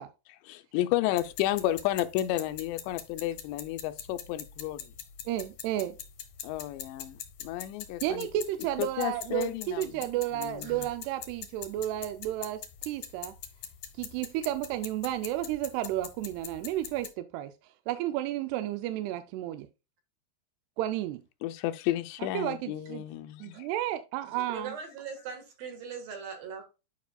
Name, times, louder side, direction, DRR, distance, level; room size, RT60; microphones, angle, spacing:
voice 1, 0.5-4.8 6.4-7.2 7.4-8.3 8.8-10.0 10.4-10.8 21.4-23.7, left 14 dB, 85° left, 2.8 m, -32 dB
sound 1, 1.2-17.1, left 9 dB, 70° left, 1.9 m, -44 dB
voice 2, 5.3-6.0 8.0-13.4 13.9-19.7 20.8-21.2 22.3-23.0 23.4-24.7, right 13 dB, 80° right, 2.5 m, -32 dB
voice 3, 24.3-26.6, right 6 dB, 60° right, 3.0 m, -40 dB
11.5 x 4.9 x 2.3 m
omnidirectional pair, 5.0 m